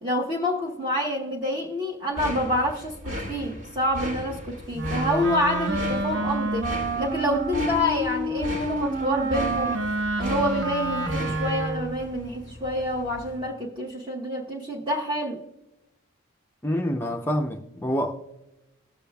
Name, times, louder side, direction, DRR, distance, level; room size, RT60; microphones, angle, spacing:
voice 1, 0.0-6.7 7.0-9.8 10.2-15.4, equal, 25° right, 0.9 m, -27 dB
sound 1, 2.1-13.5, left 1 dB, 75° right, 2.1 m, -36 dB
Wind instrument woodwind instrument, 4.7-12.0, right 1 dB, 60° right, 0.8 m, -28 dB
voice 2, 16.6-18.2, equal, 10° left, 0.4 m, -27 dB
18.5 x 6.9 x 2.3 m
head